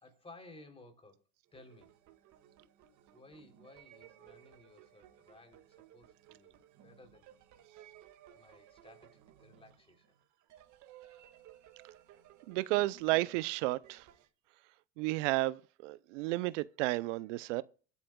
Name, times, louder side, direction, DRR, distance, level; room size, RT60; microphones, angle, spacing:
voice 1, 0.0-1.2 1.5-1.9 3.1-5.6 5.9-7.3 8.3-10.0, left 2 dB, 15° left, 3.4 m, -57 dB
sound 1, 1.5-14.3, right 11 dB, 50° right, 2.0 m, -59 dB
voice 2, 12.5-14.1 15.0-17.6, right 19 dB, 80° right, 0.7 m, -32 dB
23.0 x 8.4 x 2.3 m
supercardioid pair, 110°, 36 cm